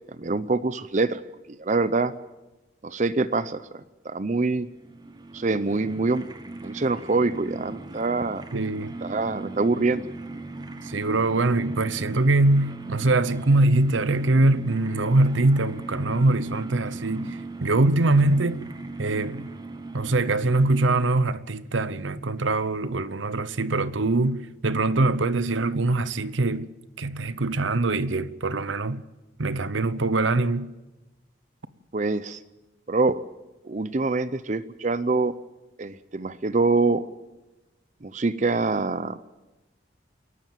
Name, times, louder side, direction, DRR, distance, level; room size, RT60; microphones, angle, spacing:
voice 1, 0.2-1.2 1.5-2.1 2.8-4.7 5.3-6.3 6.6-8.4 9.0-10.1 31.9-32.4 32.9-33.2 33.6-35.3 35.8-37.0 38.0-39.2, right 3 dB, 40° right, 0.6 m, -25 dB
sound 1, 4.7-21.3, right 2 dB, 20° right, 1.0 m, -38 dB
voice 2, 8.5-8.9 10.8-18.6 19.0-19.5 19.9-26.7 27.0-29.0 29.4-30.7, right 2 dB, 85° right, 0.8 m, -23 dB
28.0 x 11.5 x 9.1 m
head